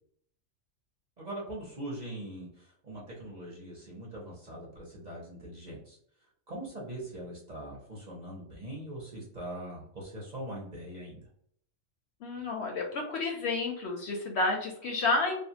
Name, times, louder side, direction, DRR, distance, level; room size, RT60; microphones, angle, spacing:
voice 1, 1.2-6.0 6.5-11.2, right 1 dB, 40° right, -4 dB, 0.7 m, -42 dB
voice 2, 12.2-15.4, left 3 dB, 65° left, 1 dB, 0.7 m, -30 dB
2.4 x 2.3 x 2.7 m, 0.66 s
omnidirectional pair, 1.4 m